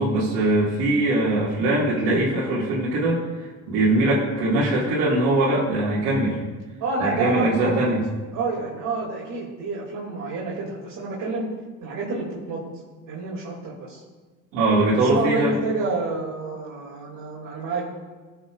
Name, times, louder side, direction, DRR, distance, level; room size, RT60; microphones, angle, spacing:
voice 1, 0.0-6.4 7.0-8.0 14.5-15.5, right 2 dB, 85° right, -9 dB, 2.4 m, -21 dB
voice 2, 6.8-7.9 8.3-11.5 11.8-12.6 13.1-14.0 14.9-17.9, right 3 dB, 65° right, -6 dB, 2.9 m, -28 dB
17.5 x 7.2 x 2.6 m, 1.4 s
supercardioid pair, 75°, 37 cm